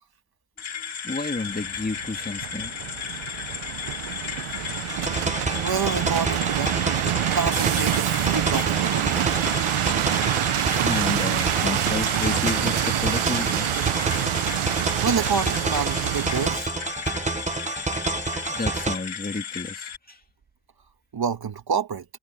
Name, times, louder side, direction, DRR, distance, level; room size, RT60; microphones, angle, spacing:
sound 1, 0.6-20.0, left 7 dB, 70° left, 3.7 m, -34 dB
voice 1, 0.7-3.4 10.8-13.7 18.5-20.2, left 3 dB, 20° left, 2.2 m, -31 dB
sound 2, 1.4-16.6, right 13 dB, 75° right, 0.8 m, -26 dB
sound 3, 4.9-18.9, right 3 dB, 15° right, 0.8 m, -29 dB
voice 2, 5.6-6.8 7.2-9.2 15.0-16.7 21.1-22.1, right 6 dB, 45° right, 2.0 m, -28 dB
cardioid pair, 105°, 50 cm